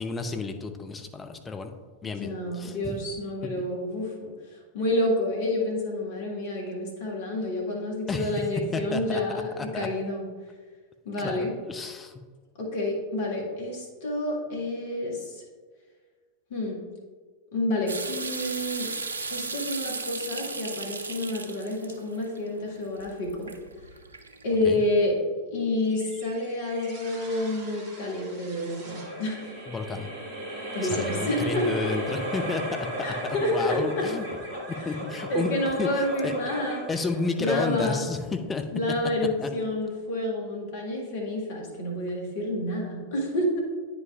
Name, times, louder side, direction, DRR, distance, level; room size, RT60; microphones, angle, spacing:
voice 1, 0.0-1.7 2.0-3.0 8.1-8.3 8.7-9.2 9.6-9.9 11.2-12.2 24.6-24.8 29.7-30.1 30.8-32.8 33.2-34.2 34.7-35.5 35.8-35.9 36.2-36.3 36.9-38.6 39.4-39.5, left 4 dB, 15° left, 6 dB, 0.6 m, -31 dB
voice 2, 2.0-4.3 4.7-10.2 11.0-11.5 12.6-15.4 16.5-16.8 17.5-18.9 19.3-23.5 24.4-25.2 25.5-29.5 30.7-31.9 33.0-34.0 34.8-34.9 35.3-36.8 37.4-38.1 38.7-43.6, left 1 dB, 55° left, -1 dB, 1.7 m, -29 dB
sound 1, 17.9-24.7, right 3 dB, 75° right, 0.4 m, -36 dB
sound 2, 25.9-38.5, right 1 dB, 40° right, 1.6 m, -37 dB
9.3 x 5.3 x 2.4 m, 1.5 s
figure-of-eight pair, 90°, 0 cm